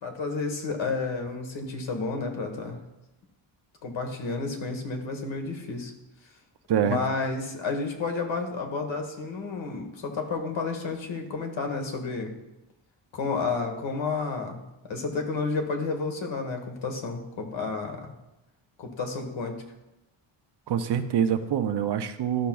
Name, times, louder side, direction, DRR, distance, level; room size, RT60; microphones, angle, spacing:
voice 1, 0.0-2.8 3.8-5.9 6.8-12.3 13.1-18.1 18.8-19.6, left 4 dB, 70° left, 4 dB, 1.4 m, -31 dB
voice 2, 20.7-22.5, right 9 dB, 55° right, 9 dB, 0.6 m, -25 dB
13.0 x 5.8 x 2.3 m, 0.95 s
wide cardioid pair, 150°, 48 cm